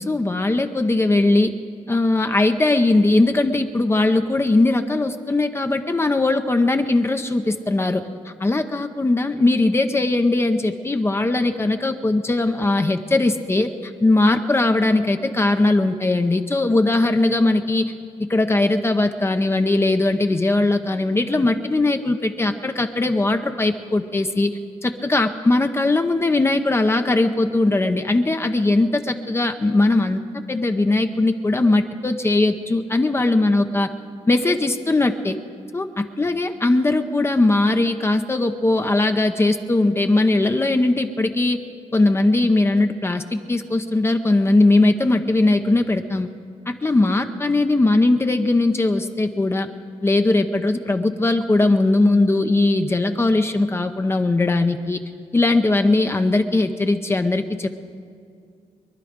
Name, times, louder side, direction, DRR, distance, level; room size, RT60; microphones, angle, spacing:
voice 1, 0.0-1.5 1.9-17.9 18.2-30.2 30.5-33.9 34.3-35.4 35.7-41.6 41.9-46.3 46.7-49.7 50.0-55.0 55.3-57.7, left 2 dB, 20° left, 7 dB, 0.7 m, -19 dB
24.0 x 11.5 x 5.1 m, 2.3 s
wide cardioid pair, 125°, 13 cm